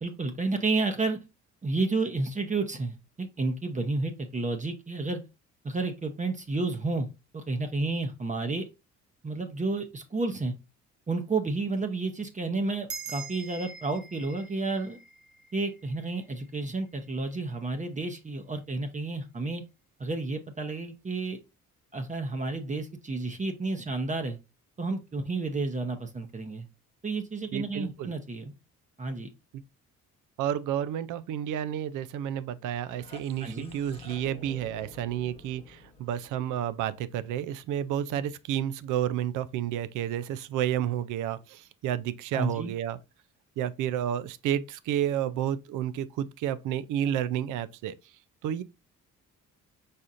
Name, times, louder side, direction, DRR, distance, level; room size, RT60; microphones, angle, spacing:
voice 1, 0.0-1.2 1.6-5.2 5.6-7.1 7.3-8.6 9.2-10.5 11.1-15.0 15.5-19.6 20.0-21.4 21.9-24.4 24.8-26.7 27.0-28.5 29.0-29.3 33.4-33.7 42.3-42.7, right 3 dB, 25° right, 0.7 m, -31 dB
sound 1, 12.9-17.6, right 5 dB, 50° right, 1.0 m, -45 dB
voice 2, 27.5-28.1 30.4-43.0 43.6-47.9 48.4-48.6, right 10 dB, 85° right, 0.5 m, -31 dB
sound 2, 32.7-37.6, left 3 dB, 20° left, 0.8 m, -50 dB
4.9 x 4.2 x 2.5 m
cardioid pair, 90°, 30 cm